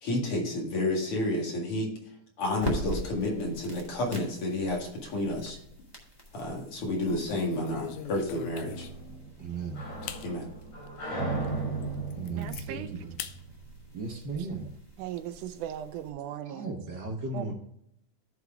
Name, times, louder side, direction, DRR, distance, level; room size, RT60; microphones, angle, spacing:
voice 1, 0.0-1.9 2.4-5.6 6.3-8.9 10.2-10.5, left 1 dB, 50° left, 2.7 m, -30 dB
sound 1, 2.5-16.1, equal, 10° left, 1.1 m, -44 dB
sound 2, 5.5-5.9 6.3-6.5 7.0-9.1 9.6-9.7 10.0-10.3 10.8-10.9 11.4-11.5 11.8-12.7 13.2-13.4 13.8-14.7, left 10 dB, 80° left, 2.1 m, -42 dB
sound 3, 8.5-14.0, right 3 dB, 65° left, 5.4 m, -36 dB
voice 2, 9.4-9.8 12.1-13.2 13.9-14.8 16.4-17.5, right 3 dB, 55° right, 1.2 m, -36 dB
voice 3, 12.3-12.9 15.0-16.7 17.3-17.5, right 10 dB, 80° right, 2.1 m, -38 dB
14.0 x 4.8 x 3.5 m
omnidirectional pair, 3.6 m